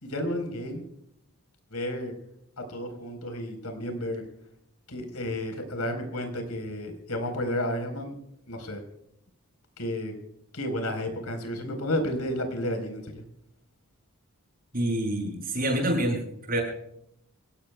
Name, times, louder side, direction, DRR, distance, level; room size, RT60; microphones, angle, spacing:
voice 1, 0.0-0.8 1.7-2.1 2.7-4.2 4.9-8.1 8.5-8.8 9.8-10.1 10.5-13.2, left 1 dB, 85° left, 6 dB, 4.3 m, -32 dB
voice 2, 14.7-16.2 16.5-16.6, right 1 dB, 40° right, 0 dB, 7.8 m, -26 dB
26.5 x 17.5 x 2.3 m, 0.76 s
head